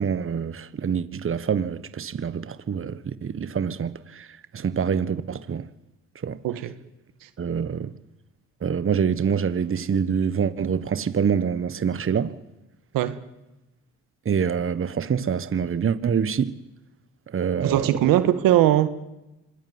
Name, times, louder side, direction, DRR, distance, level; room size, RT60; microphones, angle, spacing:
voice 1, 0.0-4.3 4.5-5.7 6.2-6.4 7.4-7.9 8.6-12.4 14.2-16.6 17.3-18.1, right 7 dB, 40° right, 1.3 m, -26 dB
voice 2, 17.6-18.9, right 13 dB, 90° right, 1.6 m, -20 dB
25.5 x 21.0 x 9.6 m
cardioid pair, 75°, 33 cm